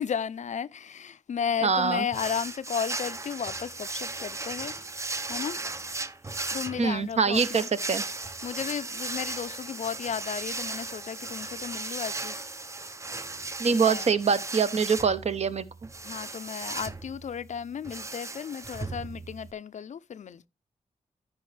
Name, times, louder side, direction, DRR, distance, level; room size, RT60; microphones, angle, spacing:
voice 1, 0.0-4.7 5.3-5.6 6.5-7.7 8.4-12.5 13.7-14.0 16.0-20.5, left 7 dB, 65° left, 0.4 m, -34 dB
voice 2, 1.6-2.1 6.8-8.0 13.6-15.7, right 5 dB, 55° right, 0.7 m, -24 dB
sound 1, 2.1-19.5, right 3 dB, 20° right, 0.5 m, -36 dB
14.5 x 4.9 x 3.2 m
wide cardioid pair, 140°, 13 cm